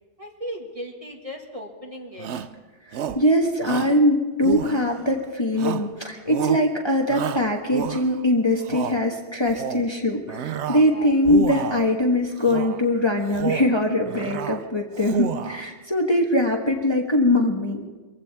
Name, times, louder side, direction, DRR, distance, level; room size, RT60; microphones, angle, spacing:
voice 1, 0.2-2.3 10.8-11.2, equal, 30° right, 0 dB, 1.9 m, -36 dB
Shout, 2.2-2.6 2.9-3.3 3.6-4.0 4.4-5.1 5.6-6.0 6.3-6.7 7.1-8.2 8.6-9.0 9.4-9.9 10.3-10.9 11.2-11.9 12.4-12.8 13.2-13.7 14.1-14.6 14.9-15.6, right 8 dB, 75° right, 1.0 m, -30 dB
voice 2, 2.9-17.9, left 1 dB, 25° left, 0 dB, 1.4 m, -22 dB
23.5 x 15.5 x 3.5 m, 1.3 s
omnidirectional pair, 1.2 m